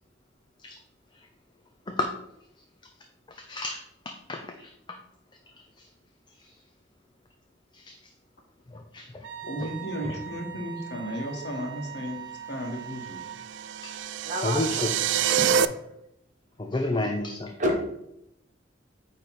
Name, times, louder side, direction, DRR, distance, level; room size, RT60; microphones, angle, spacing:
voice 1, 3.3-5.0 5.8-5.9 6.4-6.5 7.7-8.0 8.7-9.3 9.6-9.7 10.0-10.2 13.8-13.9 14.4-14.9 15.3-15.4 16.6-17.5, left 2 dB, 25° left, 3 dB, 0.5 m, -32 dB
Wind instrument woodwind instrument, 9.2-13.5, right 9 dB, 85° right, 0.8 m, -41 dB
voice 2, 9.4-13.2, equal, 60° left, 1 dB, 1.4 m, -34 dB
sound 1, 13.1-15.6, right 9 dB, 70° right, 0.3 m, -26 dB
voice 3, 14.2-14.6 15.3-15.6 16.8-17.0 17.6-17.9, equal, 40° right, 1 dB, 1.2 m, -28 dB
8.8 x 3.3 x 4.1 m, 0.81 s
head